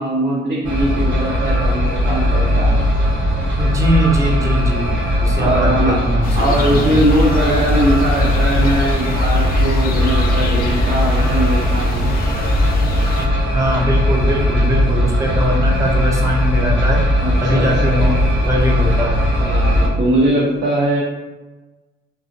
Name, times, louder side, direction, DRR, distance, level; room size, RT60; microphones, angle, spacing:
voice 1, 0.0-2.9 5.4-12.1 17.2-18.1 19.4-21.0, right 1 dB, 60° right, -6 dB, 0.7 m, -20 dB
sound 1, 0.6-19.9, equal, 90° right, 0.9 m, -18 dB
voice 2, 3.6-7.0 13.5-17.0 17.4-19.2, equal, 15° right, -1 dB, 0.5 m, -21 dB
sound 2, 6.2-13.3, left 3 dB, 50° left, 0.4 m, -26 dB
2.5 x 2.0 x 2.6 m, 1.2 s
cardioid pair, 90°, 20 cm